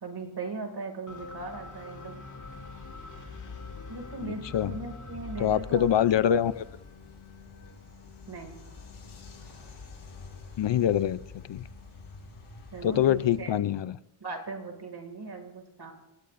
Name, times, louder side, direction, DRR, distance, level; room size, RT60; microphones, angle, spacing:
voice 1, 0.0-2.3 3.9-5.8 8.3-8.6 12.7-13.5 14.2-15.9, right 3 dB, 50° right, 4 dB, 2.3 m, -39 dB
sound 1, 1.1-12.8, left 3 dB, 40° left, 2.5 m, -49 dB
sound 2, 2.4-13.4, left 4 dB, 85° left, 4.4 m, -47 dB
voice 2, 4.2-4.8 5.4-6.6 10.6-11.6 12.8-14.0, left 10 dB, 65° left, 16 dB, 0.5 m, -25 dB
27.0 x 17.0 x 2.5 m, 0.89 s
wide cardioid pair, 175°, 49 cm